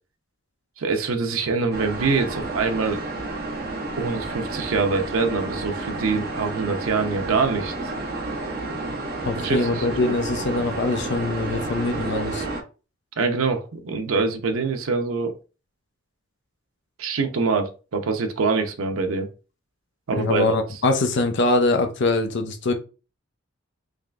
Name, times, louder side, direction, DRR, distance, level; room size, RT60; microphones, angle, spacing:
voice 1, 0.8-3.0 4.0-7.7 9.4-10.1 13.2-15.3 17.0-19.3 20.1-20.4, right 4 dB, 85° right, 0.6 m, -24 dB
sound 1, 1.7-12.6, right 2 dB, 50° right, 0.9 m, -31 dB
voice 2, 9.2-12.5 20.2-22.7, left 2 dB, 60° left, 0.6 m, -23 dB
3.5 x 3.2 x 2.4 m
head